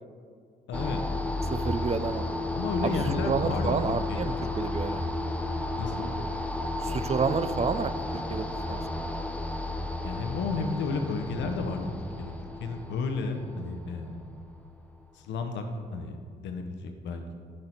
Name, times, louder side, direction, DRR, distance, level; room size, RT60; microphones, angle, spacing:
voice 1, 0.7-1.0 2.5-3.9 4.2-4.4 5.8-6.1 10.0-11.9 12.2-12.3 12.6-14.3 15.1-17.3, left 4 dB, 80° left, 5 dB, 0.7 m, -32 dB
sound 1, 0.7-14.9, left 2 dB, 5° left, 0.6 m, -33 dB
voice 2, 1.5-2.3 2.8-3.0 3.2-5.0 6.8-9.2, right 5 dB, 35° right, 12 dB, 0.4 m, -30 dB
6.5 x 5.3 x 4.3 m, 2.1 s
supercardioid pair, 50°, 19 cm